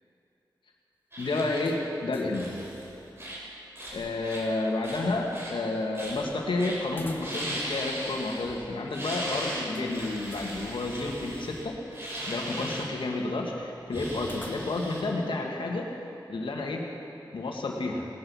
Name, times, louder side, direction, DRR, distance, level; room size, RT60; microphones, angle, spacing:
sound 1, 1.1-1.8 2.3-2.8 3.2-3.5 3.8-4.4 4.8-5.5 5.9-6.3 6.6-6.8 7.1-8.6 8.9-12.9 13.9-15.0, right 1 dB, 30° right, 4.1 m, -38 dB
voice 1, 1.2-2.5 3.9-12.0 12.3-15.9 16.3-16.8 17.3-18.1, left 2 dB, 90° left, 1 dB, 1.9 m, -30 dB
sound 2, 1.6-2.5 2.8-2.9 6.9-7.7 8.0-8.1 9.7-10.5 14.2-15.0, left 1 dB, 25° left, 1.5 m, -47 dB
18.0 x 10.5 x 7.1 m, 2.9 s
wide cardioid pair, 65°, 8 cm